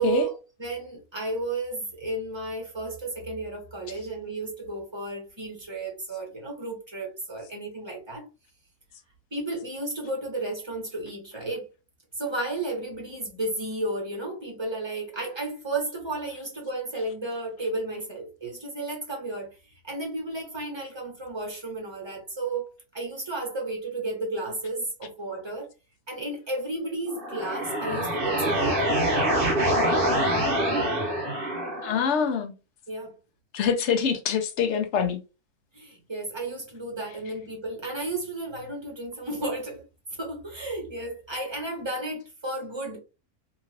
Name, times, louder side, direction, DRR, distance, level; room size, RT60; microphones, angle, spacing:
voice 1, 0.0-8.2 9.3-11.7 12.2-19.5 19.8-25.7 26.1-28.7 32.9-33.2 35.7-39.9 40.2-43.0, right 2 dB, 20° right, 0.9 m, -33 dB
sound 1, 27.1-32.0, right 1 dB, 45° right, 0.9 m, -25 dB
voice 2, 31.8-32.5 33.5-35.2, left 7 dB, 60° left, 0.8 m, -25 dB
2.9 x 2.7 x 2.6 m
omnidirectional pair, 1.6 m